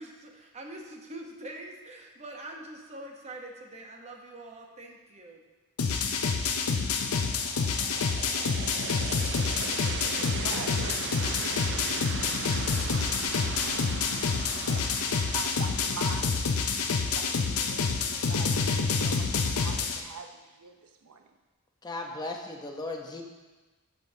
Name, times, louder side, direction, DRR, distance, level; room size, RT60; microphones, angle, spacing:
voice 1, 0.0-5.4, right 1 dB, 30° right, 1 dB, 0.9 m, -44 dB
sound 1, 5.8-20.0, left 5 dB, 75° left, 0.6 m, -28 dB
sound 2, 7.1-18.1, right 7 dB, 55° right, 0.4 m, -39 dB
voice 2, 10.4-11.4 14.5-16.4 16.8-21.2, right 4 dB, 90° right, 6 dB, 0.7 m, -43 dB
voice 3, 21.8-23.2, left 2 dB, 20° left, 1 dB, 0.7 m, -36 dB
13.0 x 5.1 x 2.7 m, 1.2 s
head